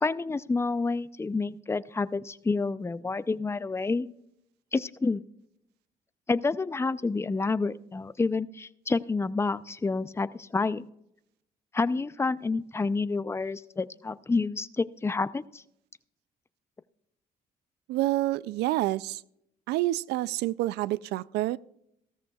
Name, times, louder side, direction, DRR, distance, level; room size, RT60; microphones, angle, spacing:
voice 1, 0.0-4.1 4.7-5.2 6.3-10.8 11.7-15.6, left 3 dB, 15° left, 15 dB, 0.5 m, -29 dB
voice 2, 17.9-19.2 19.7-21.6, right 16 dB, 85° right, 20 dB, 0.4 m, -28 dB
15.5 x 14.0 x 2.3 m, 0.78 s
cardioid pair, 80°, 17 cm